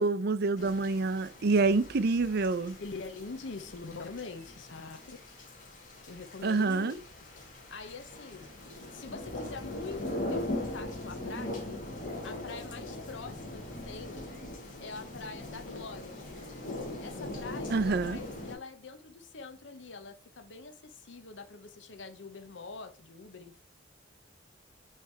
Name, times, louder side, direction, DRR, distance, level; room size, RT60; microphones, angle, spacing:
voice 1, 0.0-2.8 6.4-6.9 17.7-18.2, right 3 dB, 60° right, 0.5 m, -27 dB
sound 1, 0.6-18.6, left 1 dB, 45° left, 2.0 m, -41 dB
voice 2, 2.8-5.2 6.1-7.0 7.7-8.5 8.9-11.7 12.2-14.2 14.8-16.2 17.0-23.6, left 4 dB, 75° left, 0.8 m, -44 dB
sound 2, 9.2-14.6, left 2 dB, 30° left, 0.7 m, -50 dB
8.4 x 3.3 x 4.5 m
head